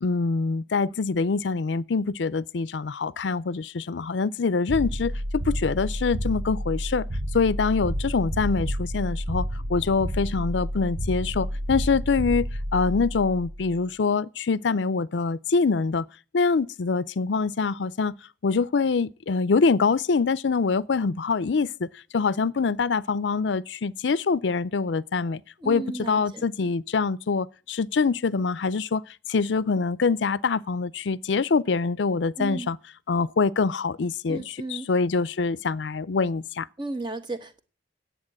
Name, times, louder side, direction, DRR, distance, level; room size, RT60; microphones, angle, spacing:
voice 1, 0.0-5.1 5.5-7.1 7.3-16.0 16.3-18.1 18.4-21.9 22.1-29.0 29.3-32.8 33.1-36.7, left 4 dB, 80° left, 0.5 m, -25 dB
sound 1, 4.7-13.8, equal, 45° right, 0.9 m, -30 dB
voice 2, 25.6-26.4 32.4-32.7 34.3-34.9 36.8-37.6, right 2 dB, 25° right, 1.2 m, -34 dB
9.7 x 8.3 x 8.8 m
head